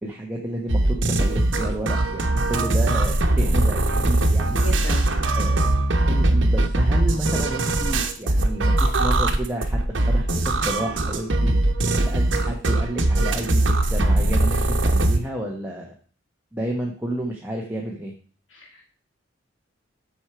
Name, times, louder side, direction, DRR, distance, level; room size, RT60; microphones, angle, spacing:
voice 1, 0.0-4.6 5.3-10.4 10.7-11.6 12.1-13.6 13.9-15.9 16.5-18.1, right 1 dB, 10° right, -2 dB, 1.3 m, -31 dB
sound 1, 0.7-15.2, right 2 dB, 70° right, 1.1 m, -21 dB
voice 2, 4.5-5.0 18.5-18.8, left 1 dB, 75° left, -1 dB, 2.4 m, -35 dB
8.2 x 6.5 x 4.5 m, 0.42 s
head